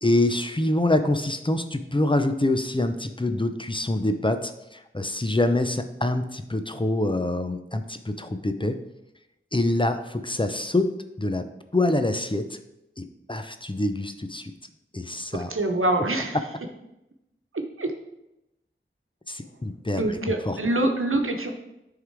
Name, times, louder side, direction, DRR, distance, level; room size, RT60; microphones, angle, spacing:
voice 1, 0.0-8.8 9.5-10.9 11.2-11.4 11.7-12.5 13.0-14.5 14.9-15.5 19.3-20.0 20.5-20.6, left 1 dB, 25° left, 8 dB, 0.6 m, -25 dB
voice 2, 15.5-16.4 17.8-17.9 19.9-21.5, right 2 dB, 80° right, 4 dB, 1.0 m, -25 dB
9.8 x 3.8 x 4.7 m, 0.90 s
wide cardioid pair, 45°, 21 cm